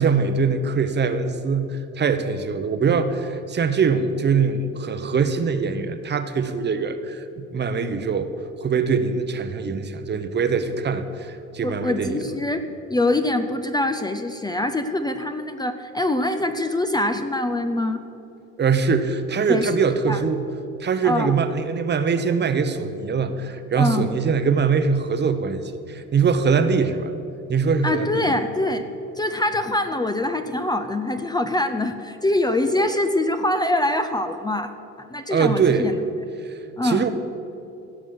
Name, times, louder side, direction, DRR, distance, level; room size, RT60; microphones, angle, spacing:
voice 1, 0.0-8.3 8.6-12.2 18.6-20.4 20.8-27.1 27.5-28.3 35.3-35.9 36.4-37.1, right 5 dB, 35° right, 10 dB, 0.9 m, -22 dB
voice 2, 11.6-18.0 19.5-19.7 20.1-20.2 21.0-21.3 23.8-24.1 27.8-28.9 29.2-34.7 35.0-35.9 36.8-37.1, left 1 dB, 15° left, 8 dB, 0.6 m, -24 dB
16.0 x 6.1 x 7.7 m, 2.8 s
cardioid pair, 100°, 31 cm